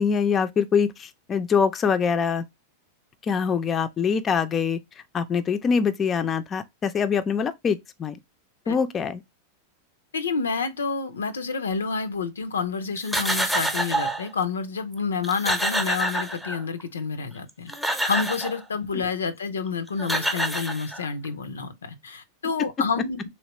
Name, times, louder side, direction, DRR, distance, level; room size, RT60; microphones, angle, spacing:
voice 1, 0.0-2.4 3.3-4.8 5.1-8.1 8.7-9.2, left 6 dB, 30° left, 0.5 m, -24 dB
voice 2, 10.1-23.2, left 5 dB, 90° left, 0.5 m, -29 dB
sound 1, 13.0-14.3 14.9-15.0 15.2-16.8 17.5-18.6 19.7-19.8 20.0-21.3, right 1 dB, ahead, 0.8 m, -27 dB
3.2 x 2.9 x 2.9 m
hypercardioid pair, 105°, 0 cm